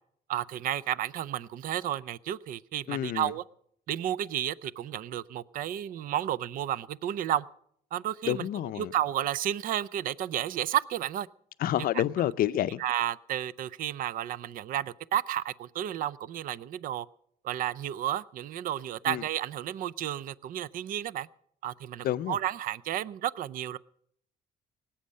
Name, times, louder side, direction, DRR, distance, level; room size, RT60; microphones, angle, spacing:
voice 1, 0.3-3.4 3.9-7.5 7.9-8.5 8.8-11.3 11.8-12.0 12.8-17.1 17.4-21.3 21.6-23.8, right 11 dB, 55° right, 20 dB, 0.5 m, -32 dB
voice 2, 2.9-3.3 8.3-8.9 11.6-12.8 19.1-19.2 22.0-22.4, left 12 dB, 60° left, 15 dB, 0.5 m, -29 dB
18.5 x 8.6 x 6.4 m, 0.68 s
cardioid pair, 110°, 17 cm